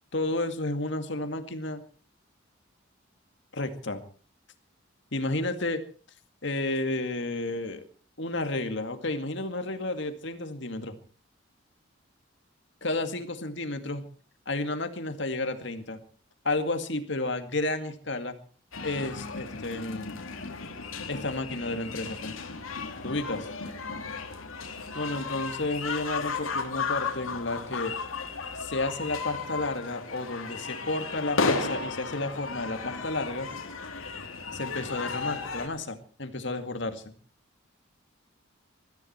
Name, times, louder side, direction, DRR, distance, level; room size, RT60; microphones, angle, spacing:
voice 1, 0.1-1.8 3.5-4.0 5.1-5.8 6.4-7.8 8.2-11.0 12.8-14.0 14.5-16.0 16.4-18.3 18.8-20.2 21.1-22.3 23.0-23.5 24.9-27.9 28.6-33.5 34.5-37.1, left 2 dB, 60° left, 8 dB, 2.2 m, -31 dB
sound 1, 18.7-35.7, left 4 dB, 85° left, 2.9 m, -34 dB
21.5 x 14.5 x 4.5 m, 0.39 s
head